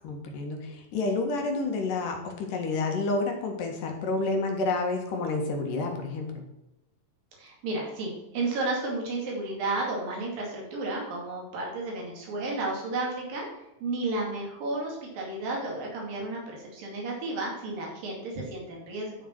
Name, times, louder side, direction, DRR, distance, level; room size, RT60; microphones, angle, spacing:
voice 1, 0.0-6.4, left 3 dB, 70° left, 2 dB, 3.3 m, -29 dB
voice 2, 7.4-13.5 13.8-19.1, right 2 dB, 80° right, -2 dB, 4.2 m, -32 dB
12.0 x 6.0 x 4.6 m, 0.92 s
omnidirectional pair, 3.9 m